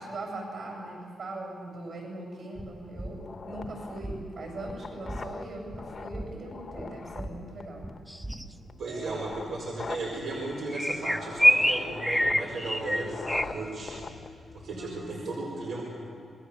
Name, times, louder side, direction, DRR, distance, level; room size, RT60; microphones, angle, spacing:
voice 1, 0.0-3.2 3.5-7.8 8.8-9.4 14.7-15.5, right 2 dB, 55° right, 0 dB, 7.7 m, -40 dB
sound 1, 2.5-8.8, right 1 dB, 20° right, 1.5 m, -41 dB
sound 2, 3.2-15.2, left 4 dB, 40° left, 0.9 m, -43 dB
sound 3, 8.1-8.4 10.7-13.4, equal, ahead, 0.7 m, -24 dB
voice 2, 8.6-14.0 14.5-15.8, right 2 dB, 75° right, -4 dB, 5.1 m, -35 dB
27.0 x 21.0 x 7.1 m, 2.6 s
wide cardioid pair, 160°, 0 cm